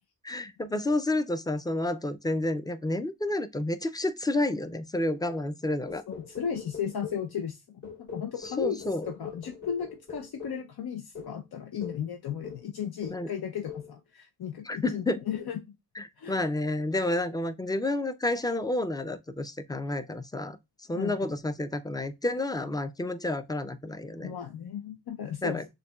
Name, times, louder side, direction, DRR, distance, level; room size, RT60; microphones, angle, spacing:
voice 1, 0.2-6.0 8.6-9.1 13.1-13.3 14.6-15.2 16.0-24.3 25.4-25.7, left 2 dB, 10° left, 0.4 m, -30 dB
sound 1, 5.9-7.3 7.8-10.7 11.1-11.4 11.8-12.1 12.4-12.7 13.0-13.3 13.7-13.9, left 6 dB, 55° left, 1.6 m, -42 dB
voice 2, 6.1-15.6 16.2-16.4 20.9-21.2 24.2-25.6, left 8 dB, 85° left, 0.6 m, -35 dB
6.5 x 2.3 x 2.3 m
wide cardioid pair, 95°, 36 cm